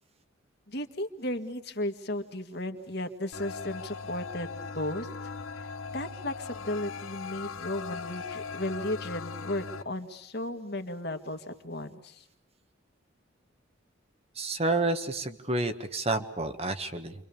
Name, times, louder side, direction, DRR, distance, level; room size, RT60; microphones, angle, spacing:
voice 1, 0.7-4.5 4.7-5.1 5.6-5.7 5.9-12.3, left 1 dB, 50° left, 6 dB, 1.9 m, -35 dB
sound 1, 3.3-9.8, left 5 dB, 85° left, 1.1 m, -39 dB
voice 2, 14.4-17.1, right 2 dB, 30° right, 8 dB, 1.4 m, -29 dB
29.0 x 25.0 x 7.1 m, 0.73 s
head